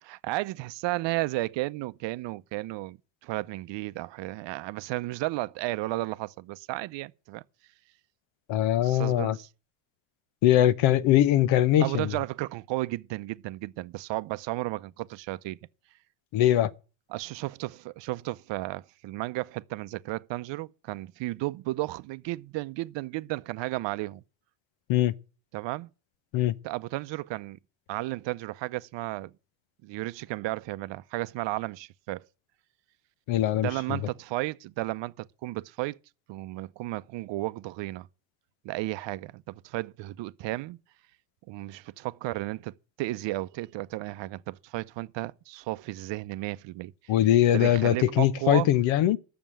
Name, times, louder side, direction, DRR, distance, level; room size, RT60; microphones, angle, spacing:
voice 1, 0.0-3.0 3.2-7.4 8.8-9.5 11.8-15.6 17.1-24.2 25.5-25.9 26.6-27.6 27.9-29.3 29.8-32.2 33.5-36.0 36.3-38.1 38.6-40.8 41.5-47.1 47.5-48.7, right 18 dB, 60° right, 0.7 m, -33 dB
voice 2, 8.5-9.4 10.4-12.1 16.3-16.7 24.9-25.1 26.3-26.5 33.3-34.0 47.1-49.2, left 12 dB, 65° left, 0.9 m, -22 dB
9.2 x 6.9 x 8.8 m
cardioid pair, 100°, 49 cm